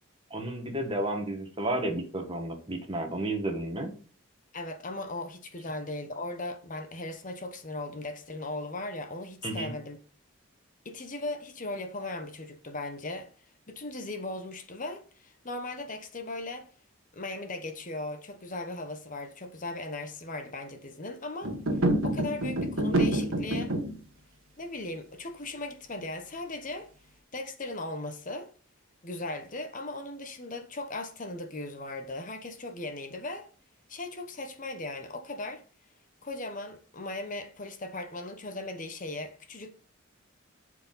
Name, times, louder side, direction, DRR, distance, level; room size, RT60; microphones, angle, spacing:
voice 1, 0.3-3.9 9.4-9.7, right 1 dB, 25° right, 1.6 m, -32 dB
voice 2, 4.5-10.0 10.8-13.3 13.7-16.7 17.1-21.5 22.0-23.7 24.6-26.9 27.3-28.5 29.0-33.5 33.9-35.6 36.2-39.7, left 2 dB, 40° left, 1.0 m, -38 dB
sound 1, 21.4-24.0, right 1 dB, 85° right, 1.4 m, -27 dB
11.5 x 4.8 x 4.0 m
head